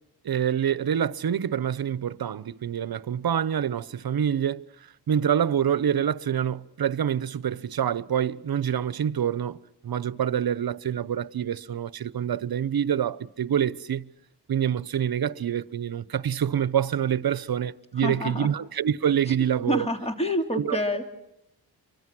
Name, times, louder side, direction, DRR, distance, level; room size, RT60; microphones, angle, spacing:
voice 1, 0.2-14.1 14.5-19.9 20.5-21.0, right 9 dB, 65° right, 0.9 m, -26 dB
voice 2, 18.0-18.5 19.7-21.1, equal, 15° left, 2.8 m, -27 dB
29.0 x 24.0 x 6.1 m
wide cardioid pair, 90°, 39 cm